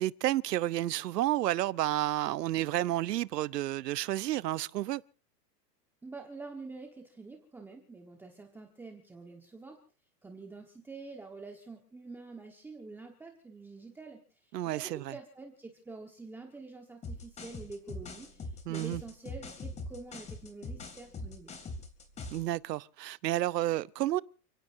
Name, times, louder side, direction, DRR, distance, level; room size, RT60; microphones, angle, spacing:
voice 1, 0.0-5.0 14.5-15.1 18.7-19.0 22.3-24.2, right 15 dB, 75° right, 0.9 m, -31 dB
voice 2, 6.0-9.8 10.2-21.5, right 3 dB, 5° right, 1.3 m, -47 dB
sound 1, 17.0-22.5, left 2 dB, 15° left, 2.5 m, -42 dB
30.0 x 17.5 x 2.7 m
supercardioid pair, 165°, 50 cm